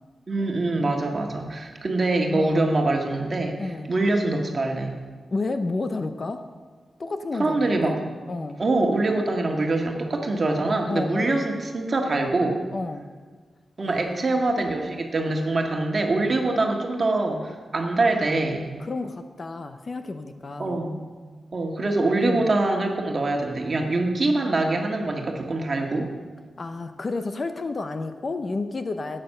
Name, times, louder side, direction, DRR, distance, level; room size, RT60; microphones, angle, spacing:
voice 1, 0.3-4.9 7.4-8.0 8.6-12.6 13.8-18.6 20.6-20.9 21.5-26.1, right 2 dB, 35° right, 2 dB, 1.7 m, -24 dB
voice 2, 2.3-2.7 3.6-3.9 5.3-6.5 7.0-7.9 8.3-8.6 10.9-11.4 12.7-13.1 13.8-14.4 18.8-20.8 22.2-22.5 26.6-29.2, left 3 dB, 35° left, 8 dB, 0.6 m, -31 dB
12.5 x 8.9 x 6.6 m, 1.5 s
wide cardioid pair, 155°, 0 cm